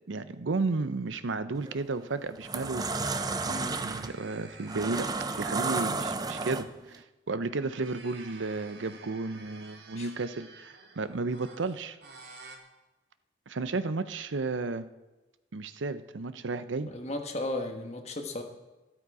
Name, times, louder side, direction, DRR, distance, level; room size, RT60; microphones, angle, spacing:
voice 1, 0.1-3.0 3.4-5.1 5.4-12.0 13.5-14.8 15.5-16.9, right 3 dB, 85° right, 13 dB, 0.7 m, -33 dB
sound 1, 1.6-1.8 2.3-7.0, right 3 dB, 20° right, 0.5 m, -32 dB
sound 2, 3.1-6.7 7.3-12.6, right 4 dB, 60° right, 1.5 m, -51 dB
voice 2, 3.4-3.8 9.9-10.1 16.9-18.4, left 2 dB, 35° left, 4 dB, 1.4 m, -35 dB
13.0 x 12.5 x 4.8 m, 1.1 s
head